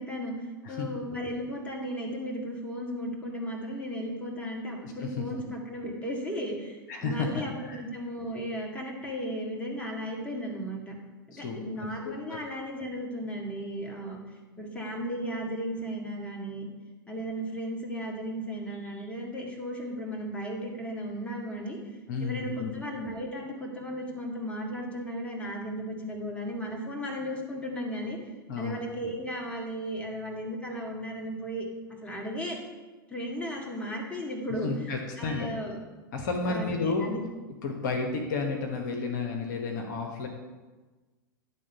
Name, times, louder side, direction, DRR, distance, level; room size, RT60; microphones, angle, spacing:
voice 1, 0.0-11.0 11.3-14.2 14.6-16.7 17.1-21.8 22.2-28.2 28.6-31.7 32.0-32.6 33.1-34.7 35.2-35.8 36.5-37.2, equal, 10° left, -1 dB, 1.7 m, -35 dB
voice 2, 4.8-5.3 6.9-7.8 11.3-11.6 12.0-12.4 22.1-22.7 28.5-28.8 34.6-35.5 36.1-37.2 37.6-40.3, left 4 dB, 55° left, 2 dB, 1.1 m, -32 dB
10.5 x 3.7 x 5.8 m, 1.2 s
figure-of-eight pair, 90°, 12 cm